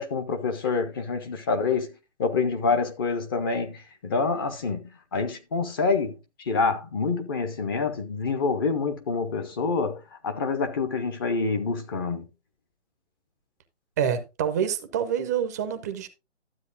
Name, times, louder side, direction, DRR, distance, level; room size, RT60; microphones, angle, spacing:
voice 1, 0.0-1.9 2.2-6.1 6.4-12.3, left 4 dB, 20° left, 0.6 m, -27 dB
voice 2, 14.0-16.1, right 8 dB, 15° right, 0.5 m, -27 dB
12.5 x 7.9 x 2.5 m
figure-of-eight pair, 145°, 35 cm